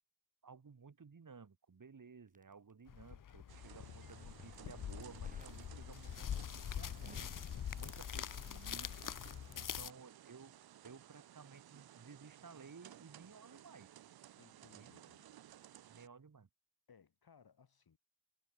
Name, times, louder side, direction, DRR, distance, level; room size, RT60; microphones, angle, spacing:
voice 1, 0.4-7.4 7.8-9.0 9.6-10.6 10.8-13.9 14.7-14.9 15.9-16.5, right 5 dB, 60° right, 2.4 m, -56 dB
Crackle, 2.3-3.4 4.0-4.6 5.2-5.6 6.0-6.5 6.8-8.7 9.0-9.2, right 2 dB, 20° right, 2.6 m, -62 dB
sound 1, 2.9-9.9, left 9 dB, 60° left, 0.6 m, -44 dB
sound 2, 3.5-16.1, right 12 dB, 90° right, 0.5 m, -58 dB
voice 2, 9.4-10.0 14.3-15.3 15.8-16.1 16.9-18.0, left 6 dB, 85° left, 3.5 m, -67 dB
cardioid pair, 55°, 36 cm